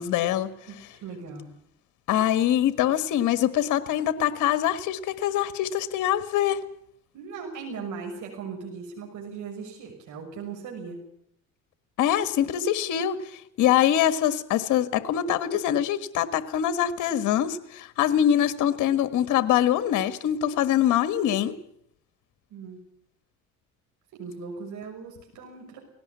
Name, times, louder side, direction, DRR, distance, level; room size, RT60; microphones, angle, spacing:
voice 1, 0.0-0.5 2.1-6.6 12.0-21.5, left 11 dB, 70° left, 12 dB, 1.5 m, -24 dB
voice 2, 0.7-1.5 7.1-11.0 22.5-22.8 24.1-25.8, right 5 dB, 65° right, 1 dB, 6.4 m, -38 dB
18.5 x 17.5 x 9.6 m, 0.70 s
cardioid pair, 105°, 32 cm